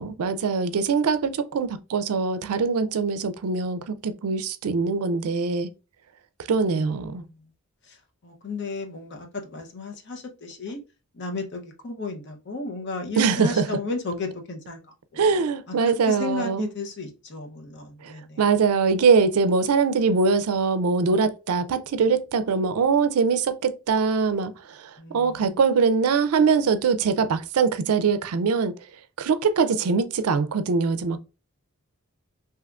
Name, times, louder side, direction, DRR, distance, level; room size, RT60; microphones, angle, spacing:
voice 1, 0.0-5.7 6.5-7.2 13.2-13.6 15.2-16.7 18.0-28.7 29.2-31.2, right 5 dB, 80° right, 0.4 m, -22 dB
voice 2, 6.7-7.5 7.9-8.0 8.2-10.8 11.1-14.8 15.7-18.4 25.0-25.5, left 3 dB, 50° left, 0.6 m, -34 dB
3.5 x 2.7 x 2.3 m
head